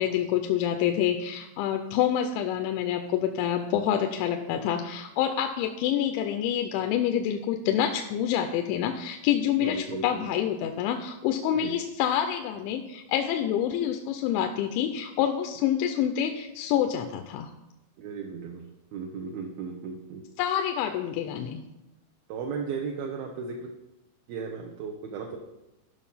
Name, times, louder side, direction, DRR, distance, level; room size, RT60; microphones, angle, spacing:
voice 1, 0.0-17.5 20.4-21.6, left 10 dB, 85° left, 6 dB, 3.0 m, -27 dB
voice 2, 9.6-10.3 11.6-11.7 18.0-20.2 22.3-23.7 24.3-25.4, right 5 dB, 75° right, 1 dB, 2.3 m, -35 dB
13.0 x 6.2 x 5.6 m, 0.96 s
omnidirectional pair, 5.2 m